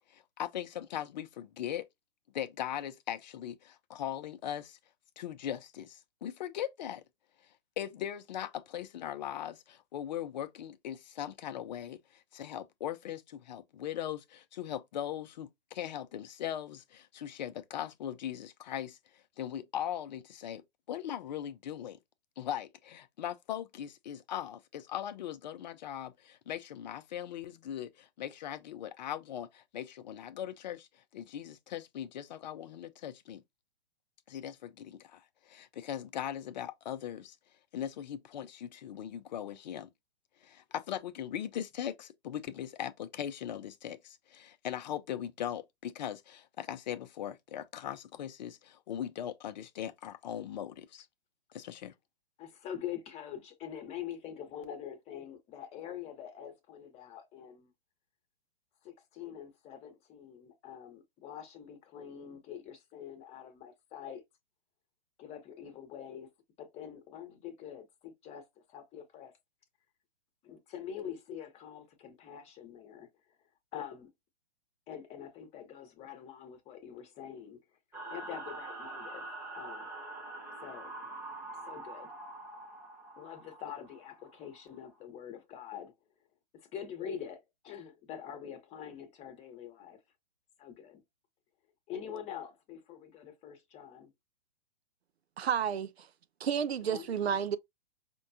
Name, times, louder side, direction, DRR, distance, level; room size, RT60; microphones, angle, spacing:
voice 1, 0.1-1.8 2.3-4.8 5.2-7.0 7.8-19.0 19.4-20.6 20.9-22.0 22.4-30.9 31.1-33.4 34.3-37.4 37.7-39.9 40.4-51.1 51.5-51.9, left 10 dB, 45° left, 0.5 m, -39 dB
voice 2, 52.4-57.7 58.8-64.2 65.2-66.3 66.6-69.3 70.4-73.1 73.7-74.1 74.9-77.6 78.1-79.3 79.5-79.9 80.6-80.9 81.6-82.1 83.2-85.9 86.5-90.0 90.6-91.0 91.9-94.1 96.9-97.4, left 9 dB, 20° left, 0.9 m, -45 dB
sound 1, 77.9-84.9, right 2 dB, 5° right, 0.4 m, -45 dB
voice 3, 95.4-96.1 96.4-97.6, right 8 dB, 80° right, 0.5 m, -31 dB
5.2 x 2.2 x 2.6 m
figure-of-eight pair, 120°, 31 cm